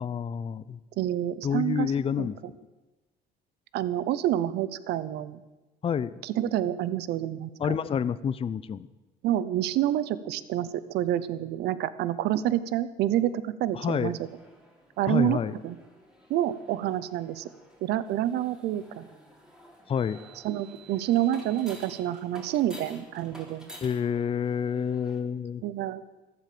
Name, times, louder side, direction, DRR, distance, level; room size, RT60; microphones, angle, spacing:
voice 1, 0.0-0.8 1.4-2.4 5.8-6.2 7.6-8.9 13.7-14.1 15.1-15.6 19.9-20.2 23.8-25.6, left 7 dB, 35° left, 15 dB, 0.6 m, -28 dB
voice 2, 1.0-1.9 2.2-2.3 3.7-5.4 6.2-7.8 9.2-14.2 15.0-15.8 16.3-17.5 17.8-19.1 20.4-23.7 25.6-26.0, right 12 dB, 80° right, 16 dB, 0.8 m, -28 dB
sound 1, 14.1-25.2, right 1 dB, 5° right, 3.6 m, -51 dB
15.0 x 12.0 x 6.9 m, 1.1 s
cardioid pair, 110°, 17 cm